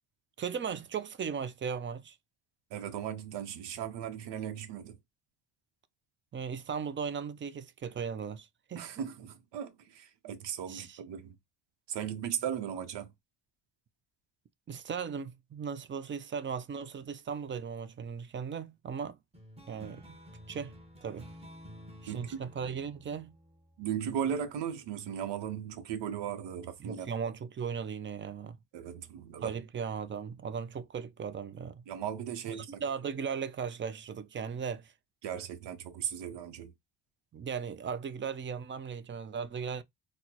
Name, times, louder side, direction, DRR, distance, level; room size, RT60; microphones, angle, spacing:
voice 1, 0.4-2.2 6.3-8.9 10.7-11.0 14.7-19.2 19.7-20.2 20.5-20.7 21.0-21.3 22.0-23.4 26.8-28.6 29.4-31.8 32.5-34.9 37.3-39.8, right 6 dB, 30° right, 0.4 m, -37 dB
voice 2, 2.7-5.0 8.7-11.4 11.9-13.1 22.1-22.4 23.8-27.1 28.7-29.6 31.9-32.8 35.2-36.7, right 9 dB, 90° right, 0.7 m, -37 dB
sound 1, 19.3-24.3, equal, 15° right, 0.9 m, -51 dB
4.1 x 2.1 x 2.8 m
cardioid pair, 120°, 41 cm